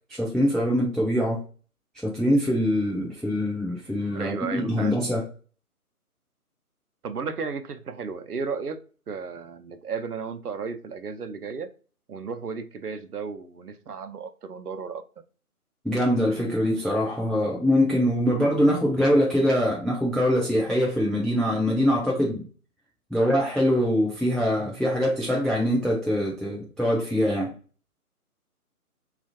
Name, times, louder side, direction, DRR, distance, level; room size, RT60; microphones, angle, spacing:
voice 1, 0.1-1.4 2.0-5.2 15.8-22.5 23.1-27.5, equal, ahead, 0.4 m, -23 dB
voice 2, 4.1-4.9 7.0-8.8 9.1-11.7 12.1-15.0, right 5 dB, 80° right, 0.6 m, -34 dB
3.1 x 2.4 x 2.6 m
figure-of-eight pair, 175°, 45 cm